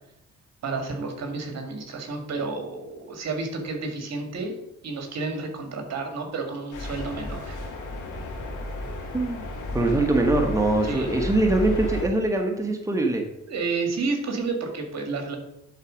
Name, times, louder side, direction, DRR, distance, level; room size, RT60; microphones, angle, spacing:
voice 1, 0.6-4.5 4.8-7.6 10.8-11.1 13.5-15.4, right 3 dB, 60° right, 4 dB, 2.0 m, -31 dB
sound 1, 6.7-12.0, left 1 dB, 75° left, 2.4 m, -33 dB
voice 2, 9.1-9.5 9.7-13.2, right 2 dB, 10° right, 3 dB, 1.2 m, -23 dB
10.5 x 4.1 x 5.1 m, 0.80 s
cardioid pair, 90°, 30 cm